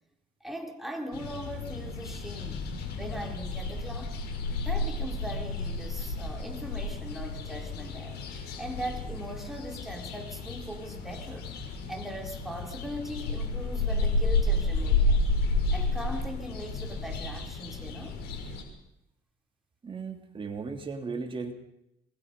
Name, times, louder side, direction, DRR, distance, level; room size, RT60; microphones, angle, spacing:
voice 1, 0.4-2.7 3.0-4.2 4.6-11.5 11.9-15.2 15.7-18.2, equal, ahead, 4.1 m, -40 dB
sound 1, 1.1-18.6, left 2 dB, 75° left, 5.7 m, -31 dB
voice 2, 19.8-21.5, right 4 dB, 30° right, 3.2 m, -36 dB
27.5 x 20.5 x 5.5 m
cardioid pair, 110°, 17 cm